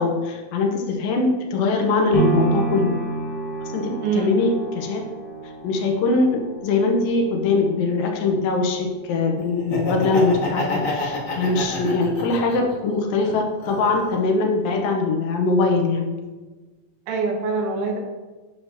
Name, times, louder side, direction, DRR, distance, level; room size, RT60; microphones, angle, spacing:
voice 1, 0.0-3.0 3.7-5.0 5.6-16.1, left 3 dB, 80° left, 2 dB, 2.6 m, -22 dB
sound 1, 2.1-10.2 10.7-10.8, right 4 dB, ahead, 1.8 m, -30 dB
voice 2, 4.0-4.4 17.1-18.0, right 4 dB, 80° right, 1 dB, 3.0 m, -24 dB
Laughter, 9.6-12.7 13.2-14.3, left 2 dB, 50° left, 0.9 m, -28 dB
9.7 x 6.9 x 2.9 m, 1.3 s
omnidirectional pair, 4.2 m